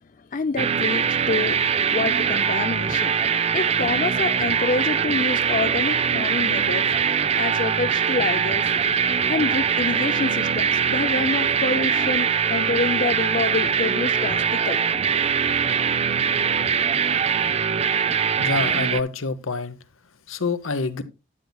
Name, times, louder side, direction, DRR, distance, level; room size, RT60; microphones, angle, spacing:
voice 1, 0.2-1.6 1.9-3.1 3.5-6.8 7.3-8.7 9.3-14.8, left 3 dB, 40° left, 0.5 m, -27 dB
sound 1, 0.6-19.0, right 7 dB, 30° right, 0.4 m, -22 dB
voice 2, 18.4-19.8 20.3-21.0, left 3 dB, 85° left, 0.9 m, -26 dB
12.5 x 9.5 x 2.3 m
head